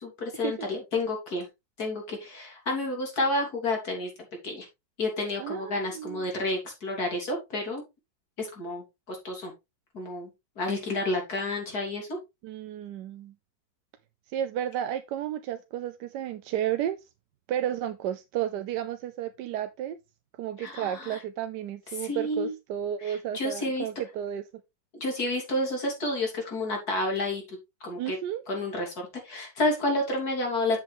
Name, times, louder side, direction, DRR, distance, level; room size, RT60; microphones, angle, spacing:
voice 1, 0.0-1.5 1.8-4.1 4.4-4.7 5.0-7.8 8.4-9.5 9.9-10.3 10.6-12.2 20.6-21.2 22.0-22.5 23.0-23.9 24.9-27.6 27.8-28.2 28.5-30.8, left 2 dB, 55° left, 3.7 m, -30 dB
voice 2, 5.4-6.3 12.4-13.3 14.3-17.0 17.5-20.0 20.4-24.4 28.0-28.4, right 11 dB, 75° right, 1.2 m, -32 dB
7.6 x 7.5 x 3.4 m
omnidirectional pair, 1.9 m